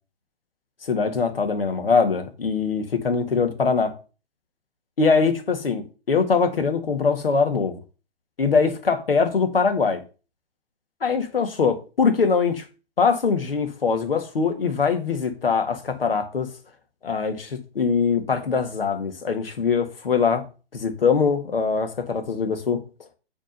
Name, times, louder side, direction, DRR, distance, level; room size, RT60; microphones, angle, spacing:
voice 1, 0.8-3.9 5.0-7.8 8.4-10.0 11.0-12.7 13.0-16.5 17.0-20.4 20.7-22.8, left 5 dB, 65° left, 1.8 m, -22 dB
9.0 x 3.7 x 5.4 m
figure-of-eight pair, 125°, 32 cm